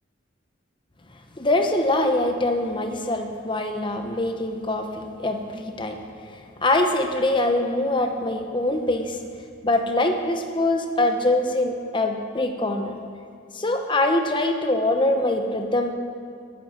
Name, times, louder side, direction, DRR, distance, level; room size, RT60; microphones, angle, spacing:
voice 1, 1.4-6.0 6.6-9.2 9.6-12.9 13.5-15.9, left 2 dB, 25° left, 5 dB, 1.0 m, -23 dB
12.5 x 12.0 x 5.6 m, 2.3 s
head